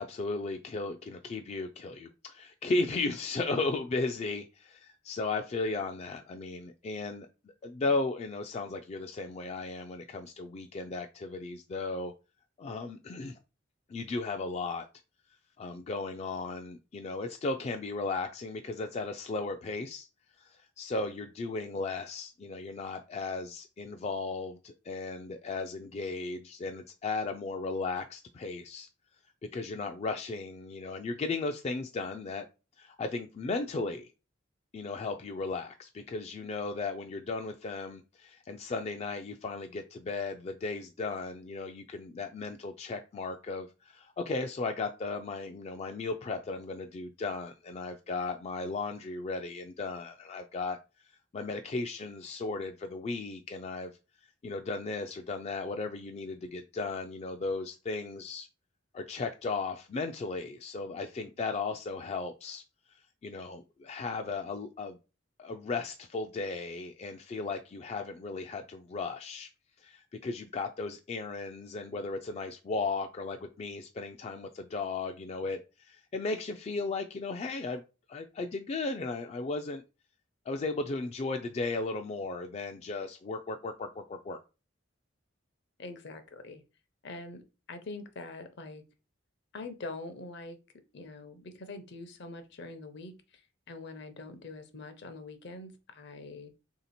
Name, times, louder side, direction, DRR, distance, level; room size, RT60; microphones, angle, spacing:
voice 1, 0.0-7.3 7.6-12.1 12.6-13.4 13.9-14.9 15.6-20.1 20.4-28.9 29.5-32.4 32.8-34.1 34.7-50.8 51.1-53.9 54.4-58.5 58.9-62.6 63.2-65.0 65.4-69.5 69.8-77.8 78.1-79.8 80.5-84.4, left 3 dB, 35° left, 0.3 m, -35 dB
voice 2, 85.8-86.6 87.0-87.4 87.7-88.8 89.5-90.6 90.9-93.4 93.7-96.5, left 3 dB, 60° left, 0.7 m, -44 dB
3.2 x 2.8 x 4.1 m
head